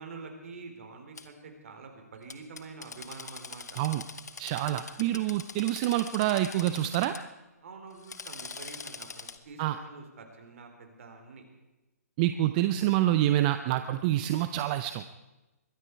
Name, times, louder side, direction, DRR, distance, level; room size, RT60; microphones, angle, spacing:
voice 1, 0.0-3.8 4.5-4.8 7.6-11.4, right 4 dB, 55° right, 4 dB, 3.8 m, -46 dB
Drill, 1.2-1.3 2.3-7.2 7.9-9.4, left 4 dB, 80° left, 1.3 m, -43 dB
voice 2, 4.4-7.2 9.6-9.8 12.2-15.1, right 14 dB, 30° right, 10 dB, 0.6 m, -27 dB
22.0 x 14.0 x 4.6 m, 1.1 s
hypercardioid pair, 145°, 9 cm